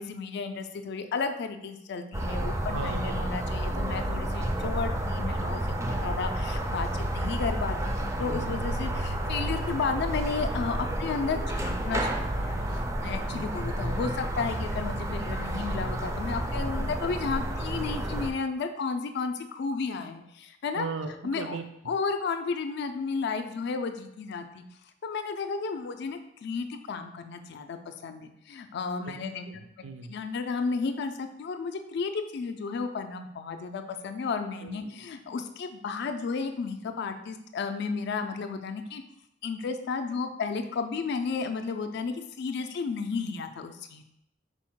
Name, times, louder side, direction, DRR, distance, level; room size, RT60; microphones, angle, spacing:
voice 1, 0.0-6.9 7.1-20.9 21.2-21.6 21.9-24.6 25.0-29.5 30.1-39.0 39.4-44.0, left 4 dB, 60° left, 7 dB, 0.3 m, -33 dB
sound 1, 2.1-18.3, right 1 dB, 15° right, 0.3 m, -30 dB
voice 2, 2.7-3.2 8.2-8.6 13.3-13.5 20.8-21.6 29.5-30.1 34.6-35.1, right 4 dB, 75° right, 7 dB, 0.4 m, -38 dB
4.1 x 2.1 x 4.5 m, 0.81 s
head